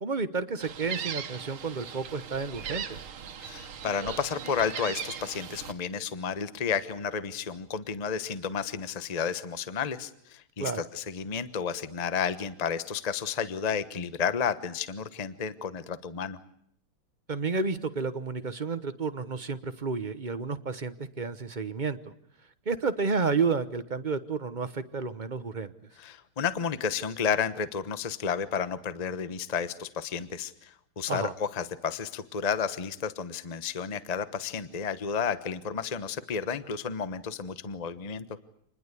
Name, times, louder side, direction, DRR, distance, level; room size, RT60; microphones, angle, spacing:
voice 1, 0.0-2.8 10.6-10.8 17.3-22.1 22.7-25.7 31.1-31.3, right 4 dB, 35° right, 11 dB, 0.8 m, -31 dB
Gull seagull, 0.6-5.7, right 8 dB, 90° right, 2.2 m, -38 dB
voice 2, 3.4-16.4 26.0-38.2, left 6 dB, 25° left, 14 dB, 0.9 m, -32 dB
27.0 x 20.5 x 8.4 m, 0.69 s
omnidirectional pair, 2.3 m